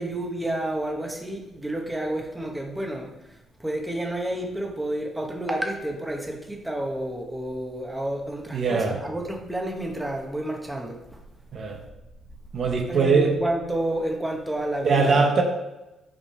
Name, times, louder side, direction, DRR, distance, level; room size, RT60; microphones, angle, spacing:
voice 1, 0.0-3.1 3.6-11.0 12.9-15.3, right 1 dB, 10° right, 0 dB, 1.4 m, -30 dB
voice 2, 8.5-9.0 11.5-11.8 12.5-13.4 14.8-15.4, right 4 dB, 55° right, 2 dB, 1.1 m, -21 dB
8.9 x 5.3 x 3.4 m, 0.99 s
cardioid pair, 90°, 0 cm